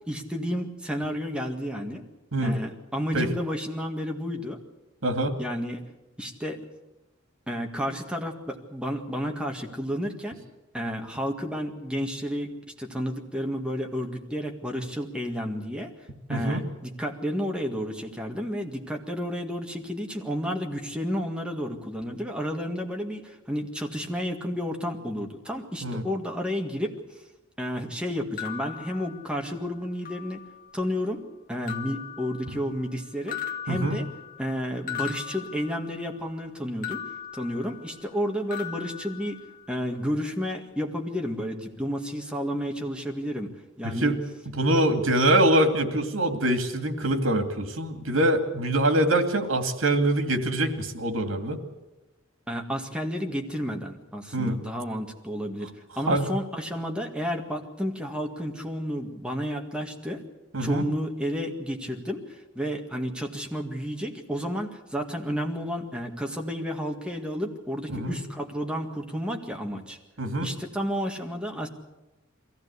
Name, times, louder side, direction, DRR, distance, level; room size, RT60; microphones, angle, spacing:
voice 1, 0.1-2.0 2.4-4.6 5.4-5.8 6.2-6.6 7.5-10.4 10.7-15.9 16.3-27.0 27.6-30.4 30.7-31.2 31.5-34.1 34.4-37.0 37.3-39.4 39.7-43.5 43.8-44.2 52.5-55.7 56.0-60.2 60.6-70.0 70.4-71.7, equal, 5° right, 2 dB, 1.9 m, -31 dB
voice 2, 5.0-5.4 16.3-16.6 25.8-26.0 33.7-34.0 43.8-44.2 44.5-51.6 54.3-54.6 56.1-56.3 60.5-60.8 67.9-68.2 70.2-70.5, right 1 dB, 90° right, 7 dB, 2.4 m, -24 dB
sound 1, 28.4-29.6 30.0-30.8 31.7-32.9 33.3-36.2 36.8-38.2 38.5-39.8, left 9 dB, 45° left, 1.3 m, -39 dB
22.5 x 15.5 x 8.3 m, 1.0 s
head